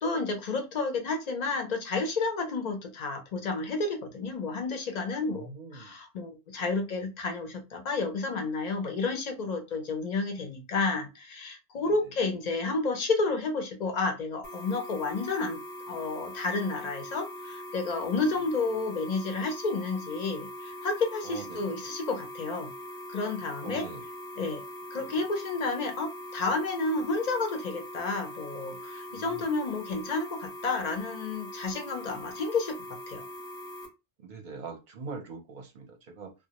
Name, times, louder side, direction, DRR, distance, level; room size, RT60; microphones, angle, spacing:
voice 1, 0.0-15.6 15.9-22.7 23.1-23.8 24.4-24.6 24.9-32.8 33.1-33.2, left 3 dB, 50° left, 4 dB, 0.5 m, -31 dB
voice 2, 5.2-6.0 6.6-6.7 11.8-12.0 18.1-18.3 21.2-21.9 23.6-24.0 25.0-25.1 29.1-29.5 34.2-36.3, right 4 dB, 50° right, 3 dB, 0.6 m, -43 dB
sound 1, 14.4-33.9, left 1 dB, 10° right, 0.5 m, -42 dB
2.2 x 2.0 x 2.8 m, 0.26 s
omnidirectional pair, 1.2 m